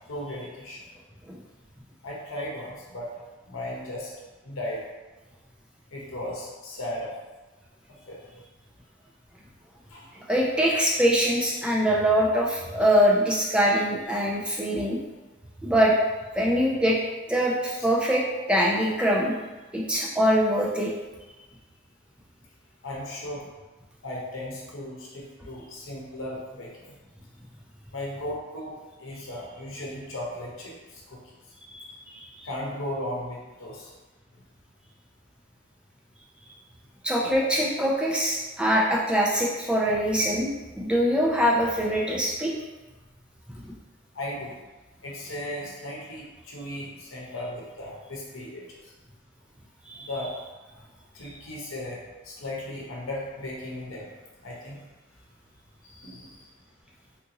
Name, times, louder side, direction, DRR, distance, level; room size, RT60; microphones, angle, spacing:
voice 1, 0.1-0.9 2.0-3.1 3.5-4.1 4.4-4.9 5.9-7.1 8.1-8.2 9.9-10.1 14.7-14.9 22.8-23.4 24.0-26.9 27.9-28.7 29.0-31.2 32.4-33.9 37.2-37.3 44.1-44.5 45.0-48.8 50.0-50.3 51.1-52.0 52.2-54.1 54.4-54.8 55.8-56.5, left 1 dB, 85° left, -4 dB, 0.8 m, -36 dB
voice 2, 10.3-15.0 15.6-15.9 16.3-17.0 17.3-18.2 18.5-19.3 19.7-20.9 31.7-31.9 32.1-32.5 37.0-42.5 49.9-50.1, equal, 5° right, -3 dB, 0.4 m, -23 dB
3.6 x 2.6 x 2.9 m, 1.2 s
head